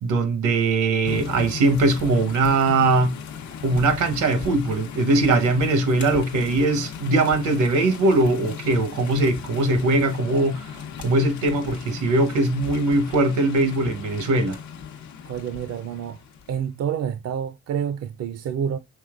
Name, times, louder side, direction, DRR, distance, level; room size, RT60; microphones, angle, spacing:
voice 1, 0.0-3.2 3.6-10.7 11.0-14.6, right 2 dB, 80° right, 1.0 m, -21 dB
sound 1, 1.0-16.6, left 7 dB, 70° left, 0.8 m, -36 dB
voice 2, 15.3-16.2 16.5-18.8, right 8 dB, 55° right, 0.5 m, -28 dB
5.4 x 3.3 x 2.3 m
cardioid pair, 90°, 30 cm